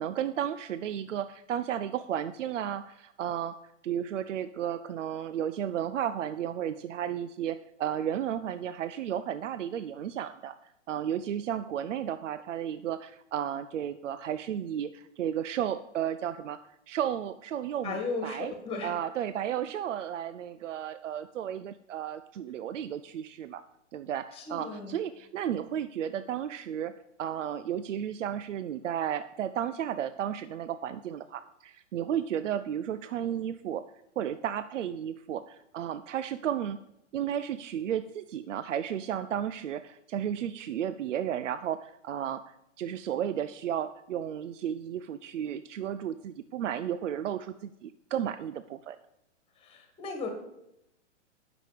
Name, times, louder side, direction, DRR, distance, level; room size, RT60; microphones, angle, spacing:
voice 1, 0.0-3.6 3.8-10.6 10.9-16.6 16.9-18.5 18.8-23.6 23.9-33.9 34.2-36.8 37.1-49.0, right 9 dB, 80° right, 12 dB, 0.5 m, -33 dB
voice 2, 17.8-18.9 24.3-25.0 49.6-50.3, left 3 dB, 15° left, 4 dB, 1.7 m, -36 dB
8.8 x 6.0 x 5.1 m, 0.83 s
hypercardioid pair, 130°, 37 cm